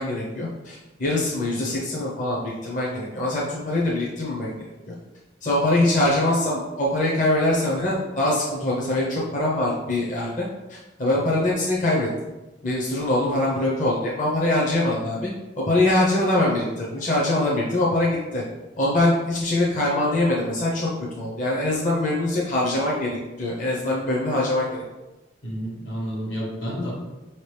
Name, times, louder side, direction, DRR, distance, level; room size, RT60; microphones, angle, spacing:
voice 1, 0.0-4.5 4.9-5.0 5.4-12.1 12.6-15.3 15.6-18.4 18.8-20.9 21.2-24.8, left 1 dB, 45° left, -5 dB, 0.7 m, -23 dB
voice 2, 25.4-26.9, equal, 80° left, -4 dB, 1.5 m, -30 dB
5.2 x 2.9 x 3.3 m, 1.1 s
head